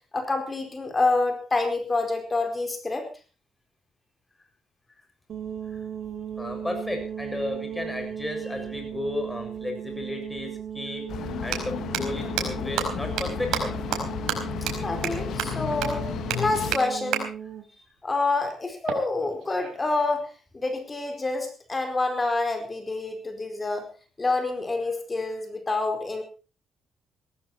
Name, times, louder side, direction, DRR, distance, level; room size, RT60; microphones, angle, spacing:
voice 1, 0.1-3.1 14.8-16.1 16.4-17.3 18.0-20.3 20.5-23.8 24.2-26.2, left 3 dB, 25° left, 5 dB, 4.8 m, -27 dB
sound 1, 5.3-17.7, right 8 dB, 60° right, 3.0 m, -36 dB
voice 2, 6.4-11.0 11.4-13.8, left 1 dB, 10° left, 4 dB, 7.2 m, -33 dB
sound 2, 10.2-10.3 11.3-11.6 11.9-12.0 12.4-12.5 12.8-12.9 13.2-13.3 13.5-13.6 13.9-14.0 14.3-14.4 14.7-14.8 15.0-15.1 15.4-15.5 15.8-15.9 16.3-16.4 16.7-16.8 17.1-17.2 18.9-19.9, right 10 dB, 80° right, 4.6 m, -28 dB
sound 3, 11.1-16.8, left 10 dB, 70° left, 1.2 m, -33 dB
17.5 x 14.5 x 4.5 m, 0.36 s
cardioid pair, 90°, 0 cm